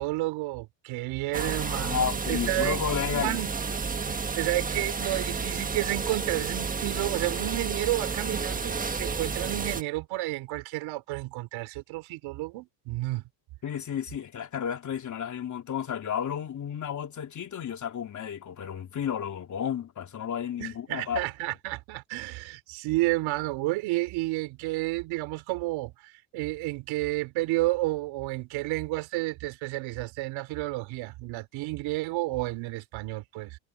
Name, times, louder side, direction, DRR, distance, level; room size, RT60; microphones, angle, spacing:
voice 1, 0.0-2.8 3.1-3.5 4.1-13.2 20.6-33.6, right 19 dB, 75° right, 3.6 m, -31 dB
sound 1, 1.3-9.8, right 5 dB, 15° right, 1.4 m, -31 dB
voice 2, 1.4-3.4 13.6-21.3, left 8 dB, 40° left, 3.4 m, -32 dB
cardioid pair, 130°, 47 cm